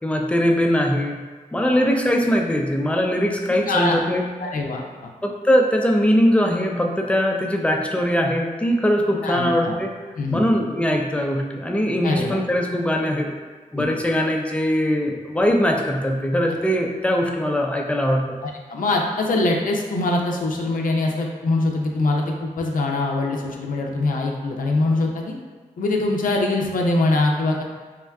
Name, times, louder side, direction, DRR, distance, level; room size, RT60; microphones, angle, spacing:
voice 1, 0.0-1.2 1.5-4.2 5.2-10.0 10.3-13.4 13.7-18.4, equal, 10° left, 1 dB, 0.4 m, -21 dB
voice 2, 1.6-1.9 3.5-4.0 4.4-5.1 9.2-9.8 10.2-10.5 12.0-12.4 13.7-13.9 16.5-16.6 18.4-25.4 25.8-27.6, left 2 dB, 70° left, 0 dB, 0.4 m, -23 dB
3.5 x 2.2 x 2.2 m, 1.4 s
cardioid pair, 45°, 15 cm